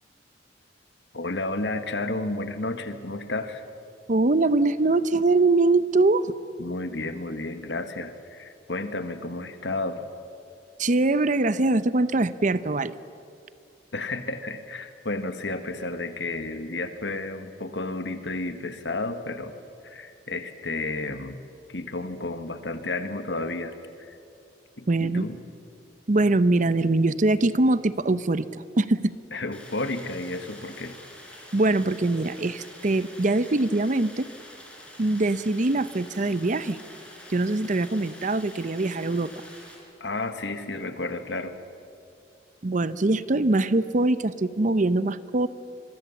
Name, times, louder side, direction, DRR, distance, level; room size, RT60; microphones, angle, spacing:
voice 1, 1.1-3.6 6.6-10.1 13.9-19.5 19.8-21.4 21.7-24.2 24.8-25.4 29.3-31.0 40.0-41.6, left 2 dB, 65° left, 9 dB, 1.6 m, -32 dB
voice 2, 4.1-6.3 10.8-12.9 24.9-25.3 26.1-29.1 31.5-34.3 35.0-36.8 37.3-39.4 42.6-45.5, right 2 dB, 40° right, 15 dB, 0.7 m, -23 dB
Stream, 29.5-39.7, left 1 dB, 5° left, 4.5 m, -47 dB
25.5 x 23.0 x 7.1 m, 2.5 s
head